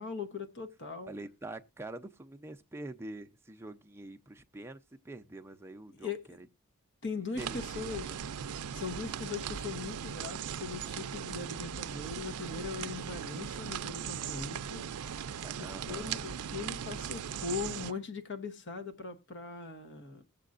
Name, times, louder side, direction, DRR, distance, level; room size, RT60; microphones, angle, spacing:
voice 1, 0.0-1.1 6.0-6.2 7.0-8.1 8.7-14.9 15.6-20.2, left 5 dB, 55° left, 1.0 m, -40 dB
voice 2, 1.1-6.5 7.3-7.6 8.1-8.2 15.4-16.2, right 2 dB, 10° right, 0.6 m, -45 dB
sound 1, 7.4-17.9, right 8 dB, 85° right, 0.5 m, -39 dB
20.0 x 7.5 x 2.5 m
head